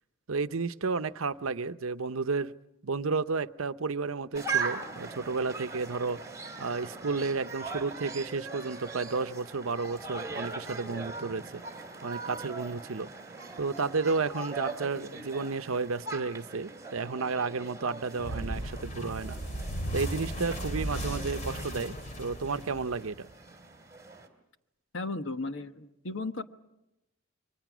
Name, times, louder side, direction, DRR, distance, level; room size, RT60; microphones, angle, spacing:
voice 1, 0.3-2.5 2.8-6.2 6.6-11.6 12.0-13.1 13.6-19.4 19.9-23.3, right 4 dB, 85° right, 12 dB, 0.8 m, -32 dB
sound 1, 4.3-24.3, right 4 dB, 15° right, 2.8 m, -40 dB
sound 2, 18.2-23.3, right 1 dB, 35° left, 3.1 m, -36 dB
voice 2, 24.9-26.4, left 3 dB, 65° left, 9 dB, 1.2 m, -35 dB
28.5 x 23.5 x 6.2 m, 0.89 s
head